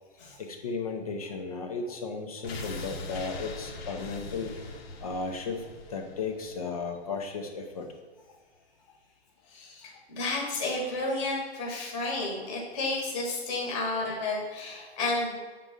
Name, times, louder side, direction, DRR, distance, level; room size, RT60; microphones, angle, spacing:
voice 1, 0.4-4.5 5.0-5.6 5.9-7.9 10.2-10.3, left 4 dB, 35° left, 4 dB, 0.6 m, -35 dB
sound 1, 2.4-7.4 7.7-7.8, left 3 dB, 60° left, 1.1 m, -41 dB
voice 2, 9.5-15.3, left 2 dB, 15° left, -2 dB, 1.2 m, -31 dB
6.7 x 3.8 x 6.4 m, 1.4 s
hypercardioid pair, 170°, 34 cm